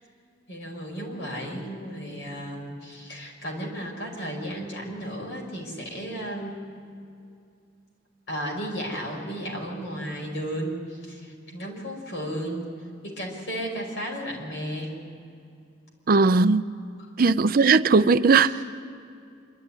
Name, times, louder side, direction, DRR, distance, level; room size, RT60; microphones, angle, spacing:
voice 1, 0.5-6.6 8.3-12.6 13.0-14.9 17.0-17.1, equal, 70° left, 0 dB, 5.4 m, -34 dB
voice 2, 16.1-16.6 17.2-18.6, right 4 dB, 50° right, 13 dB, 0.5 m, -18 dB
26.0 x 12.5 x 9.8 m, 2.4 s
head